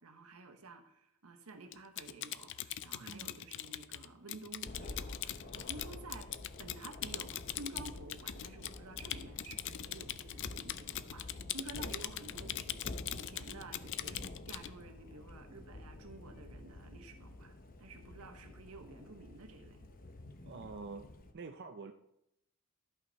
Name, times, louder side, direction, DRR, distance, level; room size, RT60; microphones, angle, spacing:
voice 1, 0.0-6.3 6.6-19.9 20.4-20.6, right 3 dB, 80° right, 6 dB, 1.1 m, -51 dB
Typing, 1.7-14.7, left 12 dB, 55° left, 0.4 m, -42 dB
voice 2, 3.0-3.3 20.5-21.1 21.3-21.9, right 4 dB, 50° right, 5 dB, 0.5 m, -46 dB
Thunder, 4.6-21.3, left 2 dB, 40° left, 0.8 m, -49 dB
12.5 x 5.8 x 4.1 m, 0.79 s
head